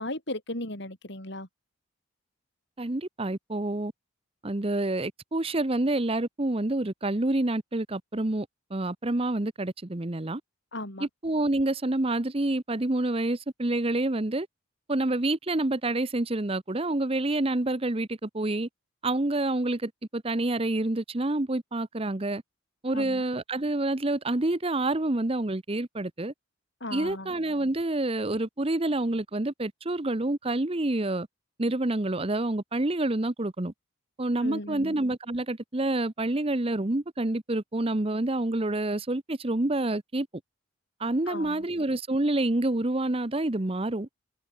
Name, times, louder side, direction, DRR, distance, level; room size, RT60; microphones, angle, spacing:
voice 1, 0.0-1.5 10.7-11.1 22.9-23.2 26.8-27.3 34.4-34.9 41.3-41.7, left 1 dB, 55° left, 5.2 m, -36 dB
voice 2, 2.8-3.9 4.4-8.5 8.7-10.4 11.0-14.5 14.9-18.7 19.0-22.4 22.8-26.3 26.9-31.3 31.6-33.7 34.2-40.3 41.0-44.1, right 2 dB, 25° right, 0.8 m, -28 dB
head